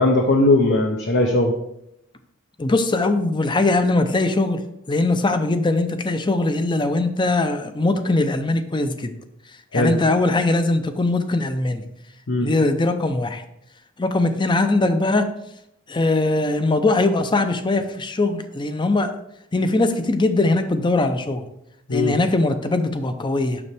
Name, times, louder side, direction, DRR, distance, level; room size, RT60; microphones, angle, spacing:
voice 1, 0.0-1.5 9.7-9.9 12.3-12.5 21.9-22.1, left 2 dB, 55° left, 1 dB, 0.7 m, -18 dB
voice 2, 2.6-4.6 4.9-9.1 9.7-11.8 12.4-13.4 14.0-15.3 15.9-19.1 19.5-21.4 21.9-23.6, left 2 dB, 25° left, 9 dB, 0.5 m, -21 dB
6.9 x 6.3 x 3.4 m, 0.80 s
head